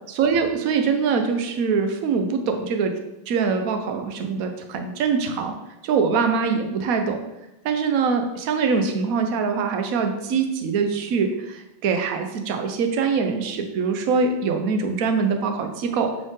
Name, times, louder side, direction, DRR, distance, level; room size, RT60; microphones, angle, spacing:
voice 1, 0.1-2.9 3.3-5.5 5.8-7.2 7.6-16.3, right 5 dB, 55° right, 6 dB, 1.0 m, -23 dB
7.8 x 5.5 x 3.7 m, 0.96 s
omnidirectional pair, 2.3 m